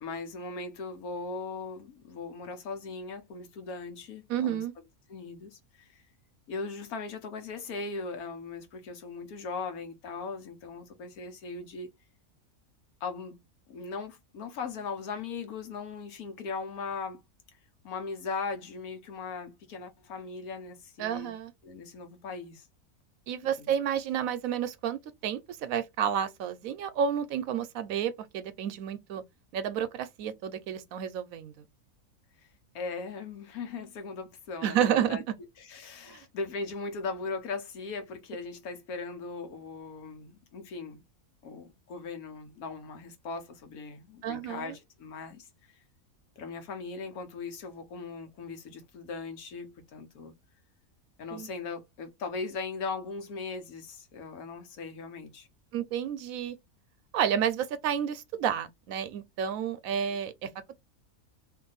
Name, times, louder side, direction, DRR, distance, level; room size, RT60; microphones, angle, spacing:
voice 1, 0.0-4.6 5.1-6.0 6.5-11.9 13.0-13.4 13.7-17.2 17.8-21.3 21.6-22.7 23.6-23.7 32.4-32.5 32.7-35.2 35.6-41.0 41.4-45.8 46.4-50.3 51.2-55.5, left 4 dB, 80° left, 1.4 m, -39 dB
voice 2, 4.3-4.7 21.0-21.5 23.3-29.2 29.5-31.6 34.6-35.2 36.1-36.2 44.2-44.8 51.3-51.5 55.7-56.6 57.1-60.7, right 8 dB, 75° right, 1.0 m, -31 dB
2.8 x 2.6 x 3.8 m
omnidirectional pair, 1.5 m